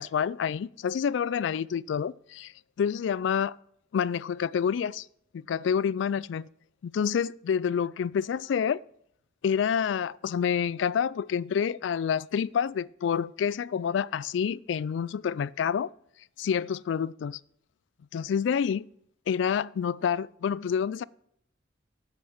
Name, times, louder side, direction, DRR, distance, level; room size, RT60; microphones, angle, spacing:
voice 1, 0.0-2.5 2.8-3.6 3.9-5.1 5.3-6.5 6.8-8.8 9.4-15.9 16.4-17.4 18.1-18.9 19.3-21.0, left 7 dB, 75° left, 0.3 m, -28 dB
8.3 x 7.8 x 5.8 m
head